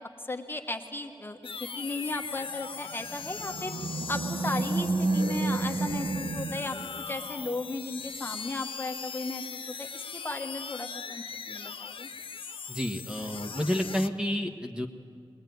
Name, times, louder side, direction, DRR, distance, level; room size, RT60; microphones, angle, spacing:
voice 1, 0.2-3.7 4.1-6.8 7.1-12.1, left 2 dB, 25° left, 4 dB, 1.3 m, -36 dB
sound 1, 1.4-14.1, left 6 dB, 90° left, 0.8 m, -40 dB
Animal, 2.9-7.5, right 3 dB, 70° right, 0.8 m, -31 dB
voice 2, 12.7-14.9, equal, 10° right, 4 dB, 1.4 m, -30 dB
21.0 x 20.0 x 9.3 m, 2.1 s
wide cardioid pair, 110°, 9 cm